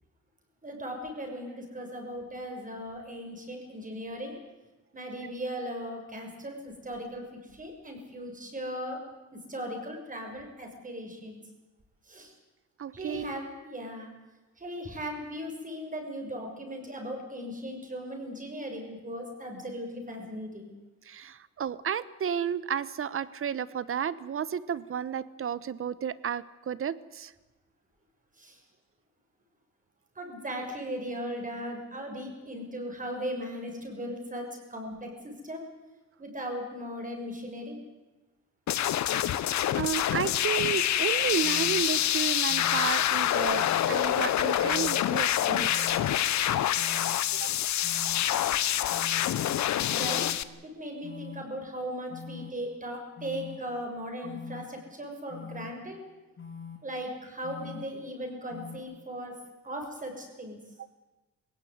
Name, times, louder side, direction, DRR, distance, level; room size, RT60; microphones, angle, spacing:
voice 1, 0.6-4.4 4.9-7.3 7.5-9.0 9.3-11.4 12.1-12.3 12.9-14.1 14.6-20.7 28.4-28.6 30.1-35.6 36.2-37.8 49.9-50.2 50.6-56.0 56.8-59.3 59.6-60.6, equal, 25° right, 3 dB, 6.7 m, -38 dB
voice 2, 12.8-13.4 21.0-27.3 39.7-46.1 47.3-47.5 60.8-60.9, right 8 dB, 45° right, 18 dB, 1.1 m, -32 dB
sound 1, 38.7-50.4, left 12 dB, 65° left, 1.0 m, -26 dB
sound 2, 41.4-41.8 42.5-42.9 43.6-44.0 44.6-45.0 45.7-46.1 46.8-47.2 47.8-48.2 48.9-49.3 50.0-50.4 51.0-51.4 52.1-52.5 53.2-53.6 54.2-54.6 55.3-55.7 56.4-56.8 57.4-57.8 58.5-58.8, left 6 dB, 45° left, 6.6 m, -43 dB
20.5 x 17.5 x 9.5 m, 1.1 s
cardioid pair, 90°, 30 cm